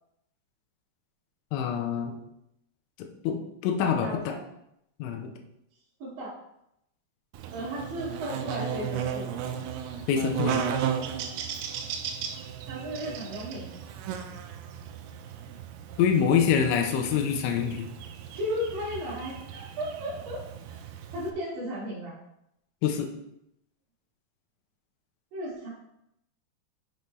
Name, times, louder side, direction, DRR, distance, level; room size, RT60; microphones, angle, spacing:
voice 1, 1.5-2.2 3.0-4.3 5.0-5.3 10.1-10.6 16.0-17.9 22.8-23.1, left 7 dB, 90° left, 3 dB, 3.2 m, -26 dB
voice 2, 4.0-4.4 6.0-6.3 7.5-9.3 12.7-13.7 18.3-20.4 20.7-20.8 21.1-22.2 25.3-25.7, equal, 55° right, -9 dB, 3.3 m, -34 dB
Buzz, 7.3-21.3, right 8 dB, 85° right, 2.3 m, -35 dB
6.8 x 6.7 x 3.1 m, 0.79 s
omnidirectional pair, 5.3 m